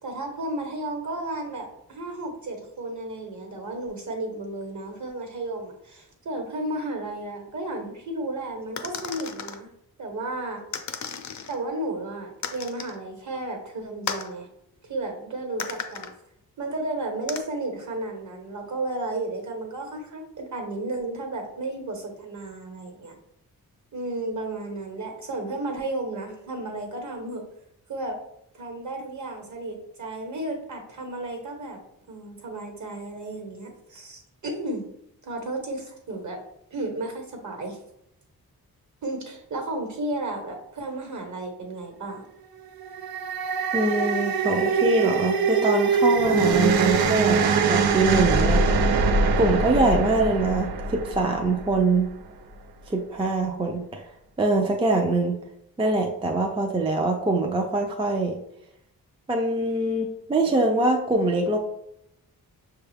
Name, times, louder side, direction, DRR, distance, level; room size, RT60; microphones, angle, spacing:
voice 1, 0.0-9.7 10.0-10.6 11.5-14.5 14.9-16.1 16.6-23.1 23.9-27.4 27.9-28.2 28.5-31.8 32.1-34.9 35.2-36.4 36.7-37.8 39.0-42.2, right 2 dB, 50° right, 3 dB, 1.1 m, -33 dB
sound 1, 8.8-9.6 10.7-11.6 12.4-13.0 14.1-14.3 15.6-16.1 17.3-17.4, left 6 dB, 50° left, 0.5 m, -34 dB
sound 2, 42.8-52.1, right 4 dB, 75° right, 0.5 m, -23 dB
voice 2, 43.7-48.6 49.4-52.1 52.9-54.1 54.4-55.4 55.8-58.4 59.3-61.6, right 2 dB, 15° right, 2 dB, 0.3 m, -23 dB
6.1 x 2.3 x 3.3 m, 0.78 s
wide cardioid pair, 140°, 37 cm